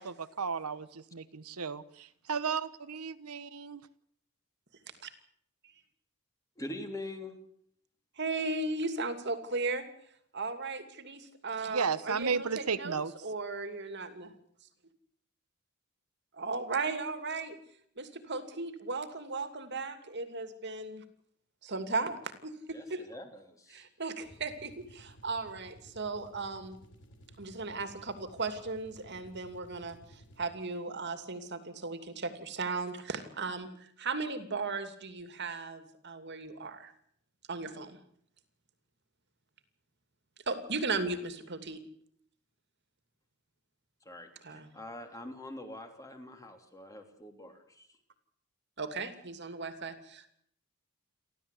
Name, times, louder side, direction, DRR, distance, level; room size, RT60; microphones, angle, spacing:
voice 1, 0.0-3.9 11.7-13.1, right 5 dB, 85° right, 1.1 m, -34 dB
voice 2, 6.6-7.4 22.7-23.9 44.0-47.9, left 1 dB, 15° left, 3.1 m, -44 dB
voice 3, 8.2-9.9 10.3-14.3 16.3-17.6 18.0-21.0 21.6-23.0 23.7-26.8 27.4-36.9 37.5-38.0 40.5-41.8 44.4-44.7 48.8-50.3, right 3 dB, 50° right, 2.7 m, -36 dB
sound 1, 24.2-30.7, equal, 55° left, 4.7 m, -56 dB
29.5 x 13.0 x 8.4 m
head